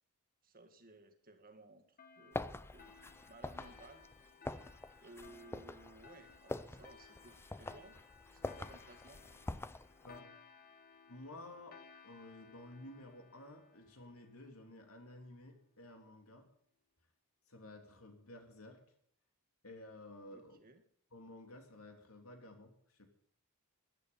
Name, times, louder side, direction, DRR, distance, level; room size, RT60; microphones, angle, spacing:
voice 1, 0.4-2.9 3.2-4.1 5.0-8.0 8.3-9.2 20.3-20.8, right 2 dB, 45° right, 7 dB, 2.0 m, -58 dB
sound 1, 2.0-15.1, left 6 dB, 40° left, 1.5 m, -61 dB
sound 2, 2.3-10.2, left 2 dB, 10° left, 0.5 m, -46 dB
voice 2, 10.0-10.4 11.1-11.8 12.0-16.5 17.5-18.8 19.6-20.6 21.1-23.1, left 1 dB, 80° left, 4 dB, 3.2 m, -53 dB
15.0 x 11.5 x 5.7 m, 0.68 s
head